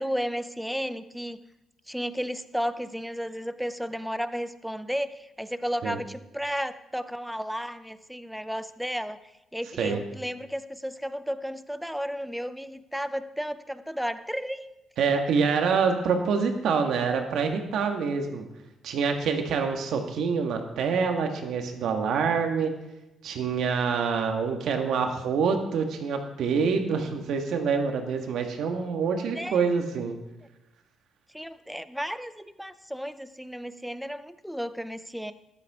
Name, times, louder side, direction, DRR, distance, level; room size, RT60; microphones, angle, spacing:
voice 1, 0.0-1.4 1.9-14.7 29.3-29.6 31.3-35.3, equal, ahead, 13 dB, 0.6 m, -33 dB
voice 2, 15.0-18.4 18.8-22.7 23.2-30.2, right 5 dB, 75° right, 4 dB, 1.6 m, -26 dB
13.0 x 11.5 x 3.7 m, 0.94 s
cardioid pair, 90°, 0 cm